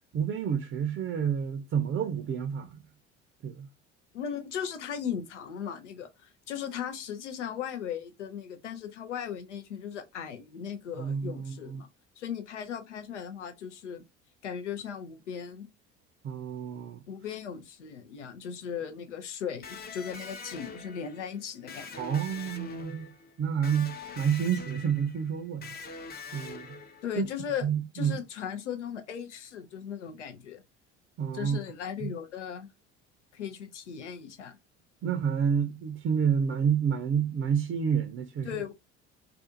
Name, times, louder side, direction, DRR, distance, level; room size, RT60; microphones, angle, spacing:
voice 1, 0.1-2.8 3.4-3.7 11.0-11.8 16.2-17.0 22.0-23.1 23.4-25.7 26.3-26.8 27.2-27.3 27.6-28.2 31.2-31.6 32.0-32.1 35.0-38.5, right 7 dB, 35° right, 0.5 m, -29 dB
voice 2, 4.1-11.9 12.2-14.0 14.4-15.7 17.1-22.1 27.0-27.7 27.9-30.6 31.3-32.7 33.3-34.6 38.4-38.7, left 8 dB, 85° left, 0.6 m, -37 dB
Electric guitar, 19.6-27.3, left 4 dB, 25° left, 0.6 m, -44 dB
2.5 x 2.4 x 2.5 m
hypercardioid pair, 65°, 35 cm